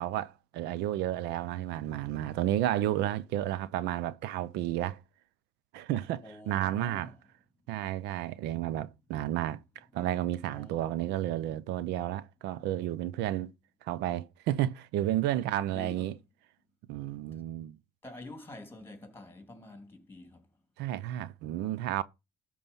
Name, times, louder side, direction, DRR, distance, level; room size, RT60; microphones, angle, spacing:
voice 1, 0.0-5.0 5.7-7.1 7.7-9.6 9.9-13.5 13.8-16.1 16.9-17.8 20.8-22.0, right 13 dB, 90° right, 0.6 m, -32 dB
voice 2, 6.2-7.1 10.5-11.1 15.3-15.4 15.7-16.1 18.0-20.5, left 1 dB, 15° left, 3.0 m, -47 dB
12.5 x 4.7 x 5.5 m
cardioid pair, 110°, 17 cm